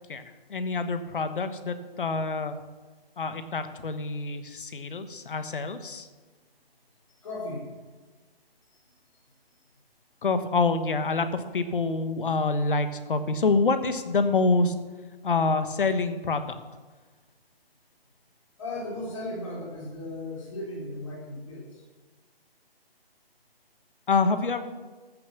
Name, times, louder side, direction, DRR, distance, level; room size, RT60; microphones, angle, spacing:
voice 1, 0.5-2.5 3.2-6.1 10.2-14.7 15.2-16.6 24.1-24.6, left 3 dB, 60° left, 10 dB, 1.3 m, -26 dB
voice 2, 7.2-7.7 8.7-9.2 18.6-21.8, left 2 dB, 30° left, -3 dB, 3.8 m, -37 dB
14.5 x 7.2 x 6.8 m, 1.3 s
hypercardioid pair, 175°, 30 cm